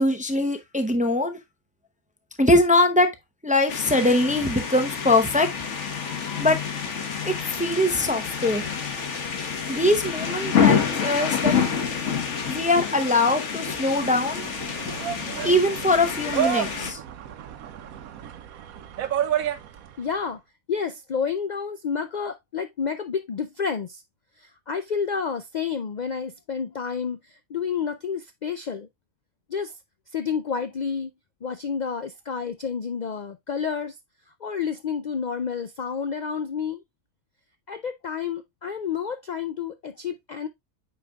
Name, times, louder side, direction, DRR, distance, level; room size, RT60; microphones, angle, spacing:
voice 1, 0.0-1.4 2.4-3.1 3.4-5.5 6.4-6.6 7.2-8.7 9.7-11.5 12.5-14.4 15.4-17.0, left 1 dB, 10° right, 0.4 m, -22 dB
sound 1, 3.7-16.9, left 7 dB, 60° left, 1.4 m, -28 dB
sound 2, 13.7-20.1, right 10 dB, 80° right, 1.1 m, -31 dB
voice 2, 20.0-20.4 20.7-24.0 24.4-28.9 29.5-29.8 30.1-31.1 31.4-34.0 34.4-36.8 37.7-40.5, left 6 dB, 80° left, 0.4 m, -30 dB
8.8 x 5.0 x 2.2 m
omnidirectional pair, 1.5 m